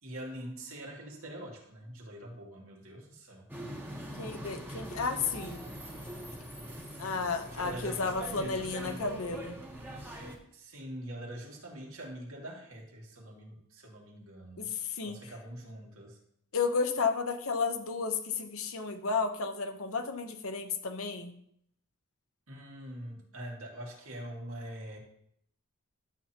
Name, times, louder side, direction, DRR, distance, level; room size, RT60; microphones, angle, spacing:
voice 1, 0.0-3.5 7.5-9.0 10.5-14.7 15.0-16.2 22.5-25.0, right 1 dB, 80° right, -2 dB, 2.4 m, -44 dB
sound 1, 3.5-10.4, right 1 dB, 10° right, 1.1 m, -43 dB
voice 2, 4.2-5.7 7.0-9.6 14.6-15.2 16.5-21.3, left 4 dB, 85° left, 6 dB, 0.9 m, -32 dB
12.0 x 7.3 x 2.9 m, 0.69 s
head